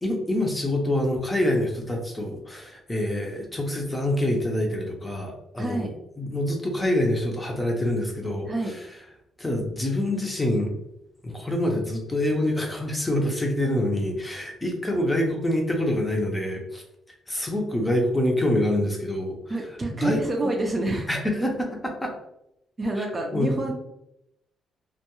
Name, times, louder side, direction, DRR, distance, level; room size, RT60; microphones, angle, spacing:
voice 1, 0.0-8.9 9.4-10.7 11.2-16.8 17.3-19.7 20.0-20.2 21.1-22.1 23.0-23.1 23.3-23.7, left 1 dB, 15° left, 1 dB, 0.6 m, -26 dB
voice 2, 5.6-5.9 8.5-8.7 19.5-21.1 22.8-23.7, right 2 dB, 30° right, 1 dB, 0.5 m, -27 dB
2.2 x 2.2 x 3.0 m, 0.81 s
cardioid pair, 90°, 0 cm